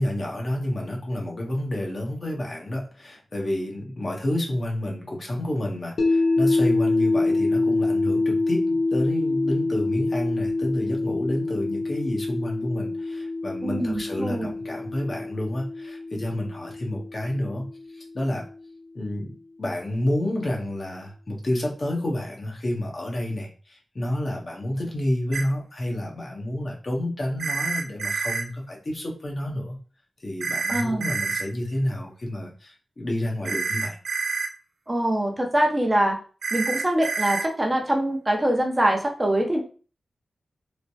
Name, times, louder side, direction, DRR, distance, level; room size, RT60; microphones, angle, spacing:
voice 1, 0.0-17.7 17.9-18.4 18.9-29.8 30.2-34.0, left 1 dB, 50° left, -1 dB, 0.8 m, -29 dB
sound 1, 6.0-18.1, left 2 dB, 75° left, 0.5 m, -26 dB
voice 2, 13.6-14.5 30.7-31.1 34.9-36.2 36.5-39.6, right 1 dB, 25° right, 2 dB, 0.6 m, -24 dB
sound 2, 25.3-25.4 27.4-28.4 30.4-31.4 33.4-34.5 36.4-37.5, right 4 dB, 90° right, 0.4 m, -27 dB
3.1 x 2.1 x 2.7 m, 0.38 s
cardioid pair, 60°, 0 cm